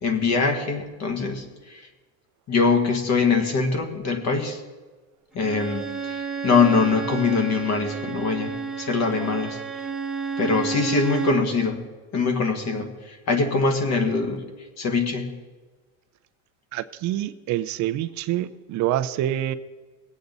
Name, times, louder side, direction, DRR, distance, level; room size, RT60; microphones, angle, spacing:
voice 1, 0.0-1.8 2.5-4.6 5.3-9.6 10.4-11.8 12.1-14.4 14.8-15.3, left 4 dB, 40° left, 5 dB, 1.8 m, -23 dB
Bowed string instrument, 5.4-11.5, right 5 dB, ahead, 1.3 m, -31 dB
voice 2, 16.7-19.5, right 13 dB, 45° right, 13 dB, 0.6 m, -26 dB
20.5 x 8.3 x 4.0 m, 1.3 s
supercardioid pair, 125°, 41 cm